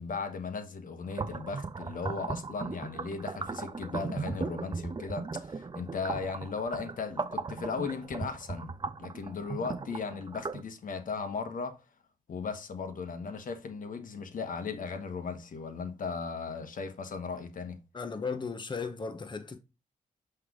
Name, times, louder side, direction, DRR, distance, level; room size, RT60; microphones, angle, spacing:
voice 1, 0.0-11.8 12.3-17.8, left 5 dB, 70° left, 1.2 m, -37 dB
sound 1, 1.1-10.6, right 4 dB, 30° right, 0.6 m, -37 dB
voice 2, 17.9-19.6, left 5 dB, 30° left, 1.0 m, -36 dB
7.7 x 3.4 x 3.7 m
cardioid pair, 65°, 15 cm